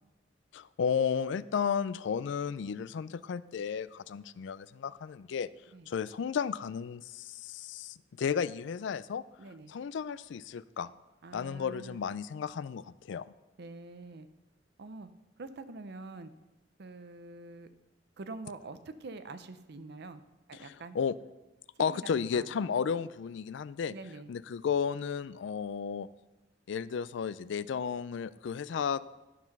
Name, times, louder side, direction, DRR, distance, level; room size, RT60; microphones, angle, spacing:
voice 1, 0.5-5.5 5.9-9.2 9.7-10.9 11.3-13.3 20.5-21.2 21.8-23.9 24.3-26.1 26.7-29.0, left 6 dB, 70° left, 17 dB, 0.4 m, -33 dB
voice 2, 9.4-9.7 11.2-12.0 13.6-14.3 14.8-15.1 15.4-16.3 16.8-17.7 18.2-20.2 20.5-21.0 21.9-22.5 23.9-24.3, right 3 dB, 60° right, 11 dB, 0.7 m, -45 dB
11.5 x 5.8 x 6.0 m, 1.0 s
head